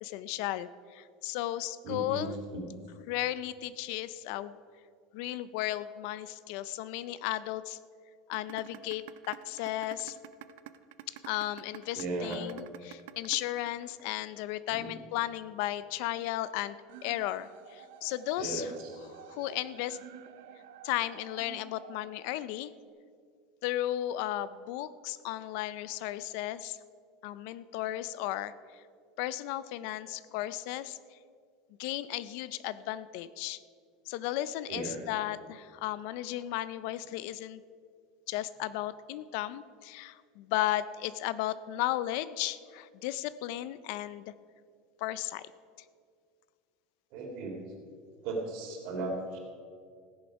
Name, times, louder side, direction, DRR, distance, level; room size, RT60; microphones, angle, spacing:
voice 1, 0.0-2.4 3.1-4.6 5.1-7.8 8.3-10.2 11.2-16.8 17.0-18.7 19.1-20.0 20.8-22.7 23.6-26.8 27.2-28.5 29.2-31.0 31.8-33.6 34.1-37.6 38.3-44.2 45.0-45.5, left 14 dB, 55° left, 16 dB, 0.4 m, -35 dB
voice 2, 1.8-2.2 2.5-2.6 11.9-12.4 14.7-15.0 18.4-18.9 34.7-35.0 47.1-47.6 48.2-49.4, right 2 dB, 50° right, 0 dB, 3.0 m, -36 dB
sound 1, 8.3-14.3, right 15 dB, 65° right, 0.6 m, -46 dB
sound 2, 16.9-22.9, right 10 dB, 85° right, 0.9 m, -51 dB
15.5 x 10.5 x 5.2 m, 2.2 s
cardioid pair, 175°, 0 cm